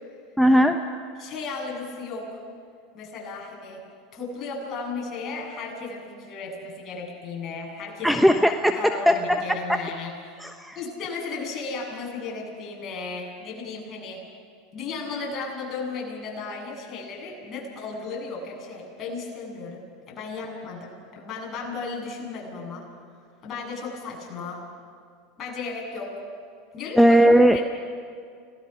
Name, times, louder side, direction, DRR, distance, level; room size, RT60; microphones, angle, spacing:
voice 1, 0.4-0.8 8.0-8.7 9.1-9.6 10.4-10.8 27.0-27.6, equal, ahead, 6 dB, 1.0 m, -18 dB
voice 2, 1.2-2.4 2.9-3.8 4.1-8.3 8.7-10.1 10.7-14.2 14.7-22.9 23.4-24.6 25.4-26.1 26.7-27.2 27.5-27.6, left 4 dB, 40° left, -1 dB, 7.9 m, -35 dB
30.0 x 19.0 x 6.0 m, 2.1 s
hypercardioid pair, 85°, 0 cm